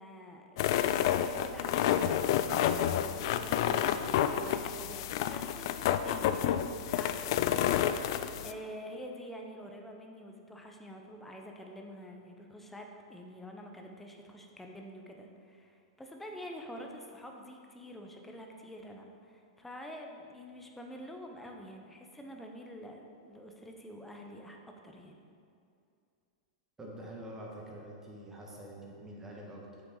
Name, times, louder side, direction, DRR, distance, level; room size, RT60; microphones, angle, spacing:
voice 1, 0.0-7.3 7.7-25.2, equal, 5° left, 1 dB, 0.9 m, -47 dB
sound 1, 0.6-8.5, left 10 dB, 55° left, 0.3 m, -29 dB
voice 2, 26.8-29.8, right 1 dB, 15° right, -2 dB, 1.6 m, -46 dB
7.6 x 5.8 x 3.9 m, 2.4 s
hypercardioid pair, 110°, 3 cm